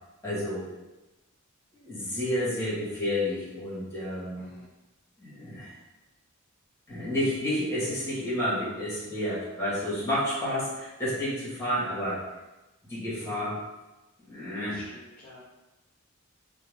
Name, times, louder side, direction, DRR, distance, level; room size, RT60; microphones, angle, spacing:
voice 1, 0.2-0.7 1.8-4.4 5.2-5.8 6.9-12.2 12.9-13.6 14.2-14.8, left 1 dB, 10° left, -8 dB, 1.2 m, -30 dB
voice 2, 4.3-4.7 13.2-13.5 14.6-15.5, left 1 dB, 40° left, -7 dB, 0.6 m, -51 dB
2.7 x 2.2 x 3.2 m, 1.1 s
head